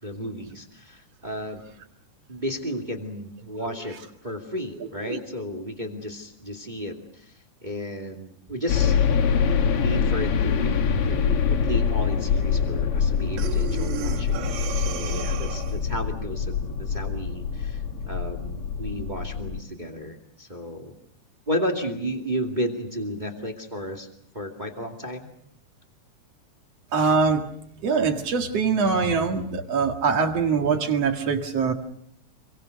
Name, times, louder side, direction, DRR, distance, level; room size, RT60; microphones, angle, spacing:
voice 1, 0.0-1.6 2.3-9.4 9.8-20.9 21.5-24.1 24.3-25.3, equal, 15° right, 4 dB, 2.0 m, -33 dB
voice 2, 4.8-5.2 26.9-27.4 27.8-31.7, right 5 dB, 50° right, 4 dB, 2.9 m, -23 dB
sound 1, 8.7-19.6, left 6 dB, 55° left, 1.7 m, -24 dB
Breathing, 13.4-15.9, right 10 dB, 85° right, 3.0 m, -34 dB
27.5 x 23.5 x 6.6 m, 0.70 s
omnidirectional pair, 3.8 m